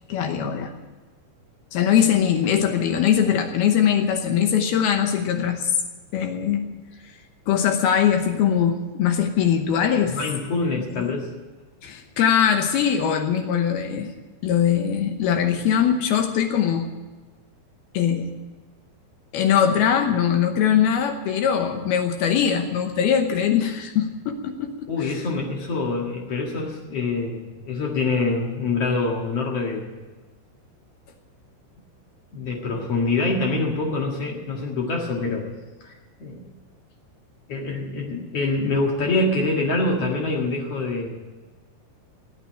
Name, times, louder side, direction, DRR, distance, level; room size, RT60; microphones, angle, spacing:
voice 1, 0.1-0.7 1.7-5.7 6.1-6.8 7.5-10.2 10.9-11.1 11.8-14.1 14.4-16.9 17.9-18.3 19.3-25.2, left 8 dB, 75° left, 5 dB, 2.3 m, -21 dB
voice 2, 10.1-11.3 24.9-29.9 32.3-35.5 35.8-35.9 36.2-36.4 37.5-41.1, left 3 dB, 55° left, 0 dB, 1.8 m, -25 dB
16.5 x 9.1 x 9.2 m, 1.3 s
omnidirectional pair, 5.6 m